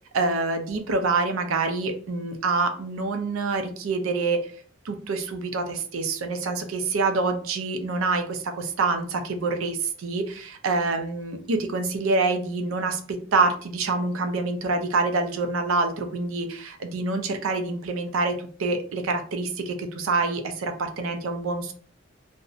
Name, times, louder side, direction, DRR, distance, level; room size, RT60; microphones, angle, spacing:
voice 1, 0.1-4.4 4.8-21.7, right 3 dB, 80° right, 6 dB, 0.4 m, -26 dB
2.5 x 2.0 x 2.4 m, 0.43 s
head